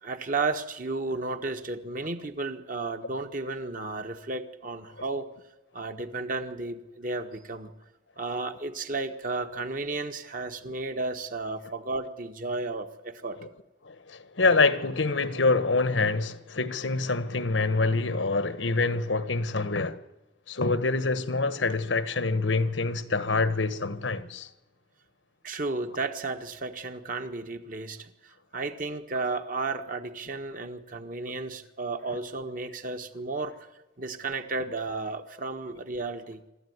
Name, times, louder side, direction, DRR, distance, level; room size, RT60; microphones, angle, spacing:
voice 1, 0.0-5.3 5.7-7.7 8.2-13.4 25.4-33.7 34.0-36.4, right 3 dB, 45° right, 1.5 m, -33 dB
voice 2, 13.8-20.0 20.5-24.5, left 3 dB, 85° left, 1.3 m, -26 dB
25.0 x 13.5 x 9.6 m
head